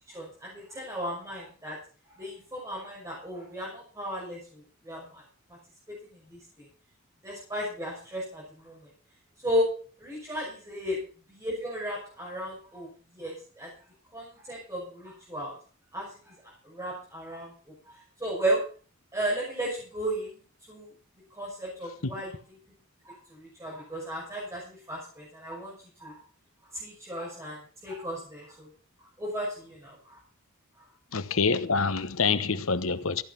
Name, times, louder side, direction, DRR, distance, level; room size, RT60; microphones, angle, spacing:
voice 1, 0.1-1.8 2.2-5.2 7.2-8.8 9.4-9.7 10.0-11.0 11.3-12.9 13.2-13.7 14.1-15.5 15.9-16.3 16.7-17.5 18.2-18.6 19.1-20.3 20.7-20.9 21.4-22.3 23.0-25.7 26.0-26.1 26.8-28.7 29.2-30.0, equal, 15° right, 6.1 m, -34 dB
voice 2, 31.1-33.2, left 4 dB, 80° left, 1.1 m, -26 dB
15.5 x 9.0 x 5.9 m
head